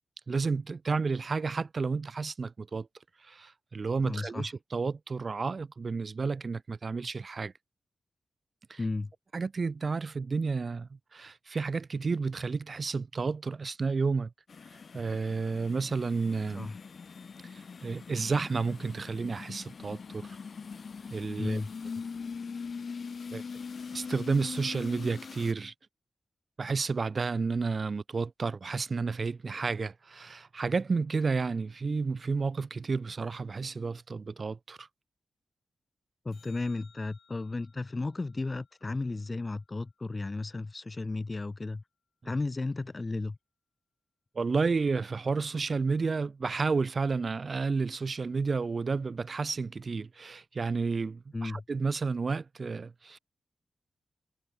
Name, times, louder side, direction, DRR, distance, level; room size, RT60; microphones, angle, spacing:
voice 1, 0.3-2.9 3.2-7.5 8.7-8.8 9.3-14.3 14.9-16.7 17.5-20.4 21.1-21.6 23.3-23.4 23.9-25.7 26.6-34.9 44.4-53.2, right 4 dB, 45° right, 0.6 m, -31 dB
voice 2, 4.0-4.5 8.8-9.1 16.5-16.8 21.4-21.7 36.2-41.8 42.2-43.4 51.3-51.6, left 3 dB, 30° left, 1.2 m, -34 dB
sound 1, 14.5-25.5, left 5 dB, 55° left, 1.9 m, -42 dB
sound 2, 36.3-40.8 47.3-47.4, left 7 dB, 80° left, 5.0 m, -64 dB
wide cardioid pair, 115°, 0 cm